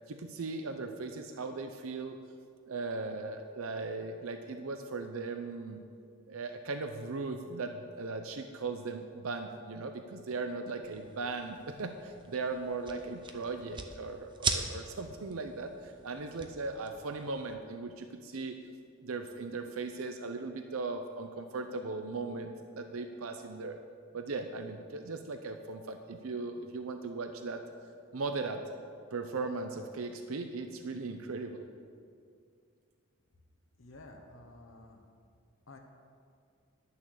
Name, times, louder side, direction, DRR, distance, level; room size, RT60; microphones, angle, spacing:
voice 1, 0.1-2.2 2.6-5.8 6.3-18.6 19.0-23.8 24.1-27.6 28.1-28.6 29.1-31.7, right 3 dB, 90° right, 6 dB, 0.6 m, -38 dB
sound 1, 10.8-17.5, right 4 dB, 25° right, 0.7 m, -41 dB
voice 2, 33.8-35.0 35.7-35.8, left 2 dB, 70° left, 2 dB, 1.1 m, -52 dB
11.0 x 7.0 x 6.5 m, 2.3 s
head